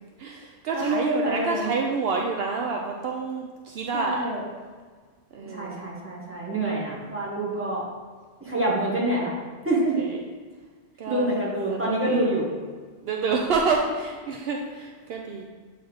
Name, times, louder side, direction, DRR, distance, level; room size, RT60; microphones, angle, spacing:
voice 1, 0.2-4.3 5.3-5.8 10.0-10.2 11.0-11.4 11.7-12.3 13.0-15.4, right 4 dB, 70° right, 1 dB, 0.7 m, -28 dB
voice 2, 0.7-1.7 3.9-4.4 5.4-7.9 8.4-9.3 9.6-10.1 11.1-12.5, right 1 dB, 10° right, -5 dB, 1.4 m, -26 dB
7.9 x 3.5 x 3.9 m, 1.5 s
omnidirectional pair, 1.1 m